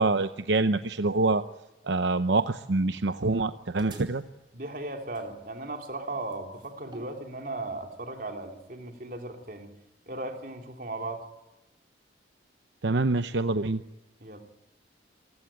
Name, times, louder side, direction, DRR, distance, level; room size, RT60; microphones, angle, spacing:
voice 1, 0.0-1.4 1.8-4.2 12.8-13.8, right 3 dB, 75° right, 10 dB, 0.8 m, -25 dB
sound 1, 3.6-8.6, right 2 dB, 25° right, 4.8 m, -53 dB
voice 2, 4.5-9.7 10.1-11.2 14.2-14.4, right 2 dB, 50° right, 3 dB, 3.4 m, -37 dB
28.0 x 16.0 x 9.0 m, 1.0 s
head